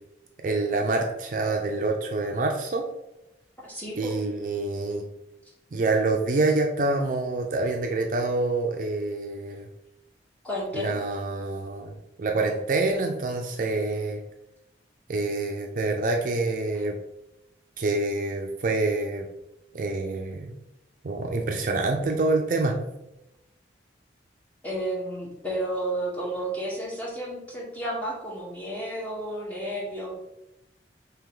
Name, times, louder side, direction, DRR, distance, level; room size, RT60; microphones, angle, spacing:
voice 1, 0.4-2.9 4.0-5.0 5.7-9.7 10.7-14.2 15.1-17.0 17.8-19.3 19.7-20.5 21.0-22.8, right 2 dB, 45° right, 3 dB, 0.4 m, -26 dB
voice 2, 3.6-4.2 10.4-10.9 24.6-30.1, right 1 dB, 10° left, -5 dB, 1.2 m, -32 dB
3.8 x 2.9 x 4.7 m, 0.91 s
head